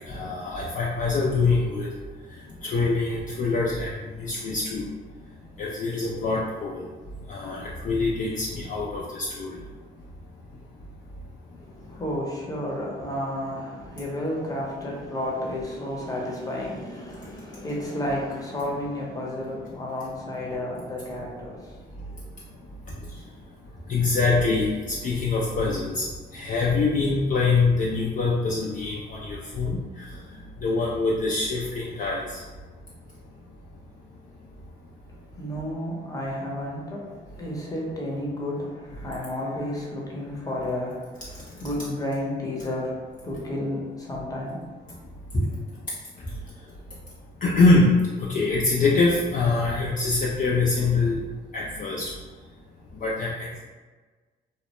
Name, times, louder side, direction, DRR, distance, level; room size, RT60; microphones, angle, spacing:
voice 1, 0.1-1.9 2.6-3.9 4.2-4.8 5.6-6.8 7.3-9.5 23.9-26.0 26.3-29.8 30.6-32.4 47.4-51.2 51.5-52.0 53.0-53.6, left 3 dB, 45° left, -4 dB, 0.4 m, -24 dB
voice 2, 11.7-22.0 22.9-23.3 35.4-37.1 37.4-41.2 41.6-44.7 45.3-45.5, left 1 dB, 20° left, -4 dB, 0.7 m, -31 dB
2.2 x 2.1 x 2.9 m, 1.4 s
cardioid pair, 90°, 20 cm